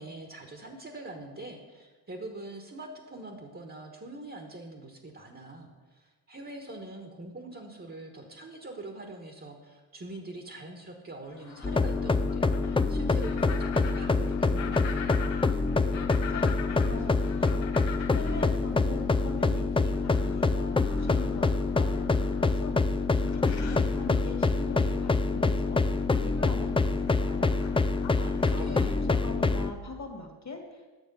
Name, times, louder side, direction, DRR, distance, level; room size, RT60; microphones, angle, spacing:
voice 1, 0.0-15.1 28.2-29.0, right 2 dB, 30° right, 2 dB, 1.4 m, -43 dB
sound 1, 11.3-29.0, left 7 dB, 85° left, 1.1 m, -45 dB
sound 2, 11.6-29.7, left 3 dB, 15° left, 0.4 m, -26 dB
voice 2, 15.8-30.9, left 2 dB, 40° left, 3 dB, 2.0 m, -42 dB
9.3 x 6.5 x 5.5 m, 1.3 s
cardioid pair, 65°, 43 cm